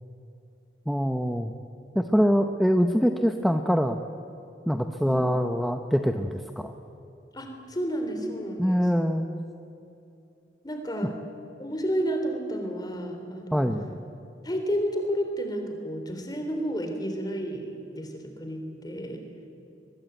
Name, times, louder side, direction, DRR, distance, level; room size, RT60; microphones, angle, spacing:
voice 1, 0.9-1.5 1.9-4.0 4.7-6.7 8.6-9.3 13.5-13.9, equal, ahead, 5 dB, 0.8 m, -24 dB
voice 2, 7.3-8.9 10.6-11.2 11.6-13.7 14.4-19.2, equal, 20° left, 4 dB, 3.7 m, -31 dB
22.5 x 22.0 x 9.1 m, 2.7 s
head